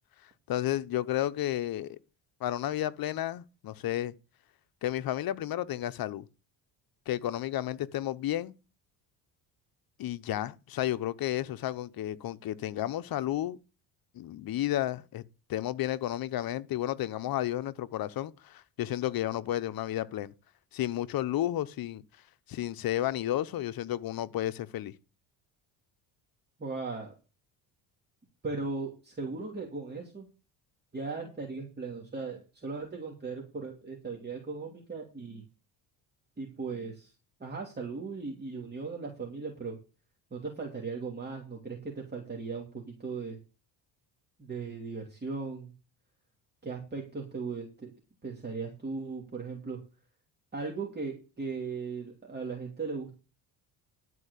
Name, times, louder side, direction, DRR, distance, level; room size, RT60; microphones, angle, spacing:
voice 1, 0.5-2.0 2.4-4.1 4.8-6.2 7.1-8.5 10.0-13.6 14.1-15.2 15.5-20.3 20.7-22.0 22.5-24.9, left 13 dB, 55° left, 0.9 m, -32 dB
voice 2, 26.6-27.1 28.4-30.3 30.9-35.4 36.4-37.1 37.4-39.7 40.3-43.4 44.4-45.7 46.6-47.9 48.2-49.8 50.5-53.1, right 4 dB, 20° right, 2.8 m, -37 dB
12.0 x 4.7 x 8.3 m
cardioid pair, 110°, 44 cm